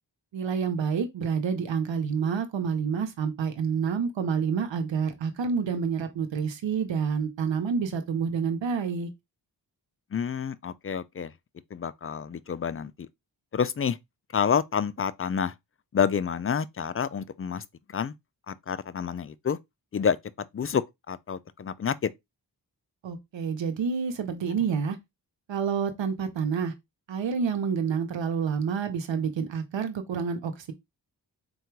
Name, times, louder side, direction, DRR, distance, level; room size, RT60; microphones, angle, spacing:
voice 1, 0.3-9.1 23.0-25.0 25.5-26.7 27.1-30.7, right 6 dB, 90° right, 0.7 m, -28 dB
voice 2, 10.1-11.3 11.7-12.9 13.5-14.0 14.3-15.5 15.9-17.6 17.9-18.1 18.5-19.6 19.9-20.2 20.5-22.1, left 7 dB, 35° left, 0.4 m, -28 dB
3.7 x 2.3 x 4.5 m
cardioid pair, 55°, 43 cm